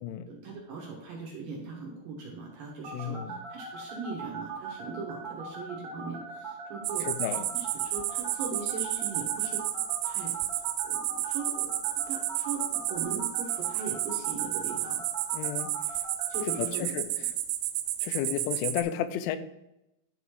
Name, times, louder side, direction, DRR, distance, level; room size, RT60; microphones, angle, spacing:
voice 1, 0.3-7.1 7.5-10.3 10.8-15.0 16.3-16.9, right 4 dB, 65° right, -2 dB, 2.5 m, -40 dB
sound 1, 2.8-16.6, right 5 dB, 35° right, 1.6 m, -39 dB
voice 2, 2.9-3.4 7.1-7.5 15.3-15.7 16.6-17.1 18.0-19.4, left 11 dB, 90° left, 11 dB, 3.1 m, -32 dB
sound 2, 6.8-18.8, right 13 dB, 85° right, 3.1 m, -32 dB
11.5 x 4.2 x 4.9 m, 0.88 s
omnidirectional pair, 5.4 m